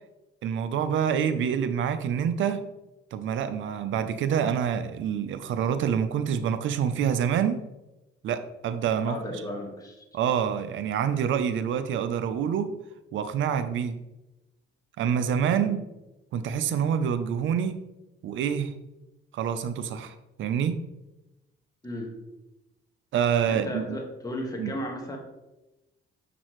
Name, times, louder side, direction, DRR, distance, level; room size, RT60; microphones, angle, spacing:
voice 1, 0.4-2.7 3.1-7.6 8.2-9.2 10.1-12.7 13.1-13.9 15.0-15.8 16.3-17.8 18.2-18.7 19.3-20.8 23.1-24.0 24.6-24.7, right 8 dB, 75° right, 11 dB, 0.6 m, -27 dB
voice 2, 9.1-10.0 15.5-15.6 21.8-22.1 23.5-25.2, left 1 dB, 20° left, 1 dB, 1.6 m, -35 dB
7.3 x 6.0 x 3.1 m, 0.97 s
cardioid pair, 90°, 20 cm